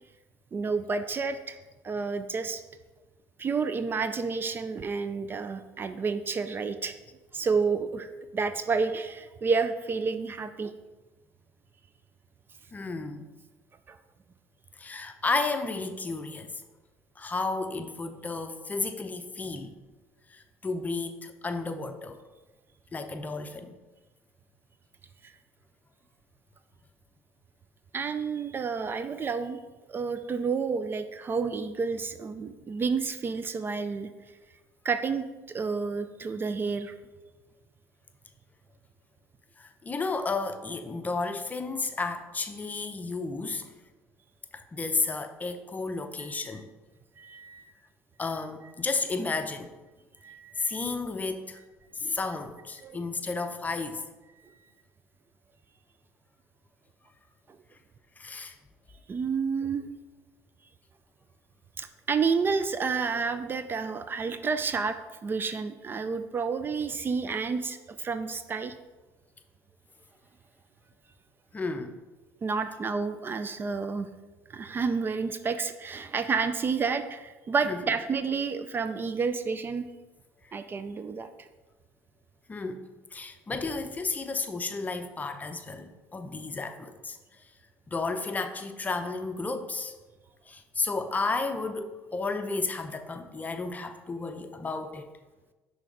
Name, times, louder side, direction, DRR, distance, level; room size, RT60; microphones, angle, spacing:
voice 1, 0.5-1.6 1.8-2.6 3.4-6.9 7.3-10.7 13.9-14.0 27.9-29.6 29.9-34.1 34.8-35.2 35.5-36.9 46.4-46.6 47.2-47.7 50.2-50.7 52.0-52.2 52.8-53.0 54.4-54.6 59.1-59.9 61.8-68.7 72.4-74.1 74.5-79.9 80.5-81.3, right 5 dB, 35° right, 11 dB, 0.4 m, -30 dB
voice 2, 12.7-13.2 14.8-16.5 17.2-19.8 20.3-22.2 22.9-23.8 39.6-43.7 44.5-46.7 48.2-49.7 50.6-51.6 51.9-54.1 58.2-58.5 71.5-72.0 77.6-77.8 80.4-80.6 82.5-82.8 83.1-87.2 87.9-89.9 90.5-95.1, left 3 dB, 25° left, 8 dB, 0.6 m, -32 dB
6.1 x 3.3 x 4.9 m, 1.2 s
supercardioid pair, 75°, 7 cm